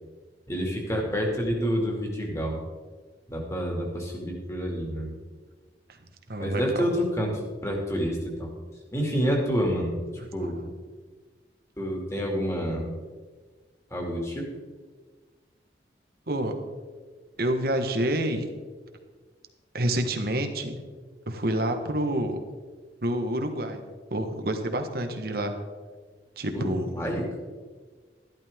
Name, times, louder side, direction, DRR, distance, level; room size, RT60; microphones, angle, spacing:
voice 1, 0.5-2.6 3.3-5.2 6.4-7.3 7.6-8.5 8.9-9.9 10.3-10.7 11.8-12.9 13.9-14.5 26.5-27.4, equal, 15° left, 0 dB, 2.3 m, -28 dB
voice 2, 6.3-6.8 10.2-10.5 16.3-16.5 17.4-18.4 19.7-20.8 21.3-22.4 23.0-23.8 24.1-25.5 26.4-26.9, right 1 dB, 55° right, 5 dB, 1.3 m, -28 dB
13.0 x 12.0 x 3.6 m, 1.5 s
head